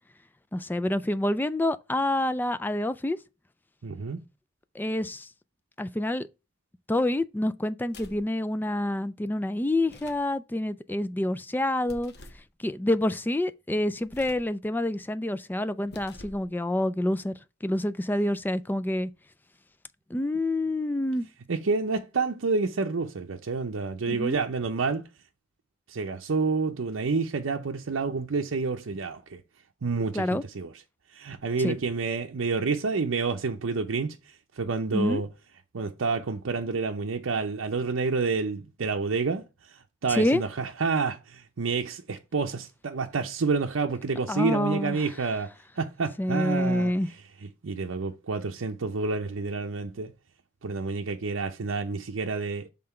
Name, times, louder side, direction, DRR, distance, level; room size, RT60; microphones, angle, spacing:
voice 1, 0.5-3.2 4.8-5.3 5.8-6.3 6.9-12.1 12.6-17.3 17.6-19.1 20.1-21.3 24.1-24.4 30.1-30.4 31.6-31.8 34.9-35.2 40.1-40.4 44.3-45.0 46.2-47.1, left 1 dB, 10° left, 0.3 m, -27 dB
voice 2, 3.8-4.2 21.5-25.0 25.9-29.4 29.8-30.7 31.1-34.2 34.6-35.3 35.7-39.4 40.0-45.5 45.8-46.9 47.6-50.1 50.6-52.7, right 4 dB, 75° right, 0.6 m, -29 dB
sound 1, 7.9-8.3 9.8-10.3 11.9-12.5 14.0-14.5 15.8-16.5, left 2 dB, 55° left, 1.0 m, -48 dB
5.8 x 3.8 x 4.3 m
head